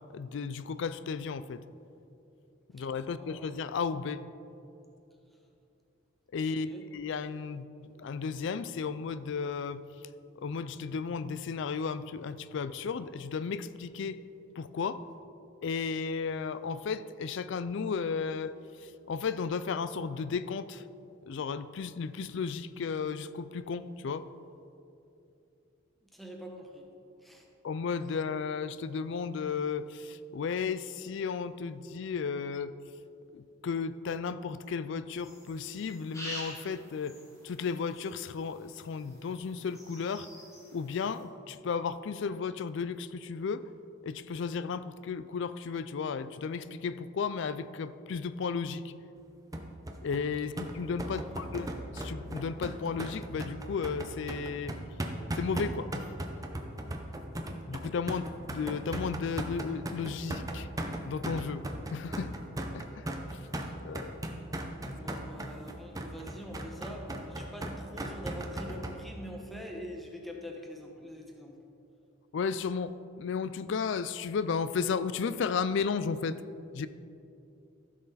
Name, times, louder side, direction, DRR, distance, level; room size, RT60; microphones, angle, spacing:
voice 1, 0.1-1.6 2.7-4.2 6.3-7.7 8.0-9.8 10.4-14.2 14.6-15.0 15.6-18.5 19.1-20.8 21.3-24.3 27.6-32.7 33.3-37.2 37.4-40.3 40.7-43.6 44.0-48.9 50.0-54.8 55.4-56.0 57.7-60.7 61.0-61.6 61.9-62.3 62.7-63.4 63.8-64.2 72.3-76.4 76.7-76.9, left 5 dB, 60° left, 14 dB, 0.4 m, -34 dB
voice 2, 3.0-3.5 6.6-6.9 26.1-26.8 27.2-27.4 51.1-51.7 64.9-71.6, equal, ahead, 0 dB, 1.1 m, -44 dB
sound 1, 35.2-41.2, equal, 15° left, 1.9 m, -47 dB
sound 2, 49.5-68.9, right 1 dB, 15° right, 0.7 m, -37 dB
15.0 x 6.4 x 4.1 m, 2.7 s
head